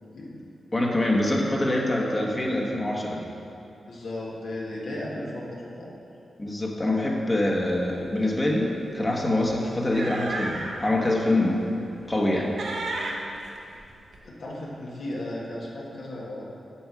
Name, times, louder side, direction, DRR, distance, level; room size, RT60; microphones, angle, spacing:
voice 1, 0.7-3.3 6.4-11.7 12.1-12.6, left 1 dB, 25° left, -1 dB, 1.2 m, -25 dB
voice 2, 3.9-5.9 14.2-16.4, left 1 dB, 75° left, -5 dB, 1.8 m, -35 dB
sound 1, 7.7-7.8 8.1-8.4 9.4-10.8 11.3-11.5 12.0-12.3 12.6-14.2, right 2 dB, 75° right, 1.1 m, -34 dB
7.2 x 7.1 x 6.2 m, 2.6 s
wide cardioid pair, 100°, 0 cm